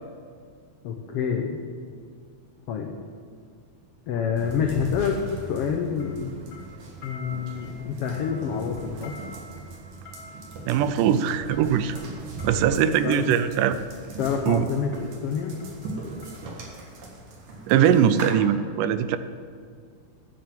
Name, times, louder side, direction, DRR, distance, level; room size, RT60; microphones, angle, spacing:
voice 1, 0.8-1.6 2.7-3.0 4.1-6.5 7.0-9.2 12.7-13.3 14.2-15.6, left 7 dB, 85° left, 3 dB, 1.3 m, -28 dB
sound 1, 2.5-2.7 4.4-5.7 6.0-13.7 14.4-14.7 14.9-16.8 17.1-17.2, left 1 dB, 40° left, 1.7 m, -49 dB
sound 2, 4.4-18.3, right 2 dB, 65° right, 2.9 m, -40 dB
voice 2, 10.7-12.0 12.4-13.8 14.5-14.7 17.7-19.2, right 9 dB, 85° right, 12 dB, 2.1 m, -21 dB
10.0 x 7.2 x 7.7 m, 2.1 s
omnidirectional pair, 3.7 m